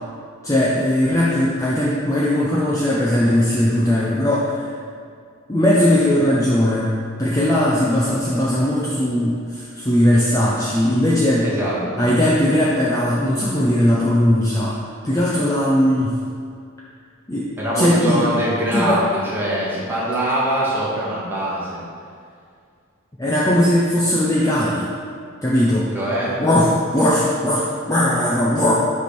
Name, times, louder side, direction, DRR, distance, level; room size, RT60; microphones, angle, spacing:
voice 1, 0.4-4.7 5.5-6.9 7.2-11.4 12.0-14.8 15.0-16.2 17.3-18.3 18.7-19.0 23.2-24.9 25.4-25.9 26.4-28.7, left 1 dB, 15° left, -6 dB, 0.6 m, -18 dB
voice 2, 11.4-12.1 17.6-19.1 19.3-21.8 25.9-26.4, right 1 dB, 10° right, -8 dB, 1.7 m, -23 dB
7.8 x 3.5 x 6.0 m, 2.2 s
head